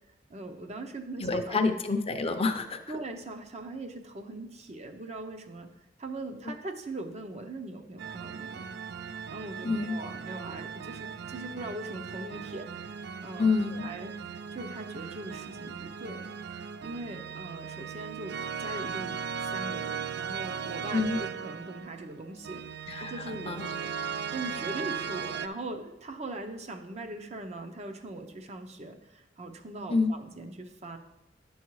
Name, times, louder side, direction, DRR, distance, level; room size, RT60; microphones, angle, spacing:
voice 1, 0.3-1.6 2.9-5.7 6.0-8.6 9.3-14.1 14.5-16.3 16.8-19.1 19.4-22.6 23.0-23.6 24.3-31.0, right 2 dB, 35° right, 5 dB, 0.7 m, -40 dB
voice 2, 1.2-3.0 6.4-6.5 9.6-9.9 13.4-13.9 20.9-21.2 22.9-23.7 29.9-30.1, left 4 dB, 35° left, 6 dB, 0.6 m, -28 dB
sound 1, 8.0-25.5, right 6 dB, 65° right, 0.4 m, -38 dB
10.5 x 7.1 x 3.1 m, 0.95 s
head